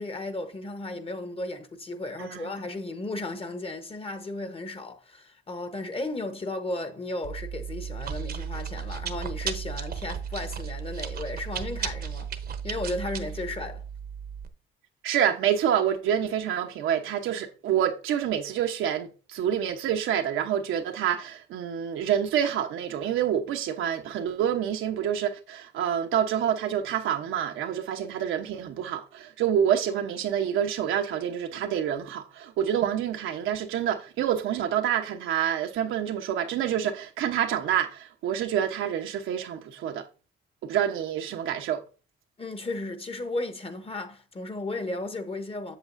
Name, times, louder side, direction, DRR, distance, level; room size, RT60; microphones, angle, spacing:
voice 1, 0.0-12.3 12.6-13.8 42.4-45.8, left 2 dB, 30° left, 1.2 m, -34 dB
voice 2, 2.2-2.5 15.0-40.1 40.6-41.8, right 9 dB, 85° right, 1.0 m, -27 dB
Chewing mastication, 7.2-14.5, right 7 dB, 50° right, 0.9 m, -35 dB
7.9 x 7.0 x 2.6 m
cardioid pair, 90°, 20 cm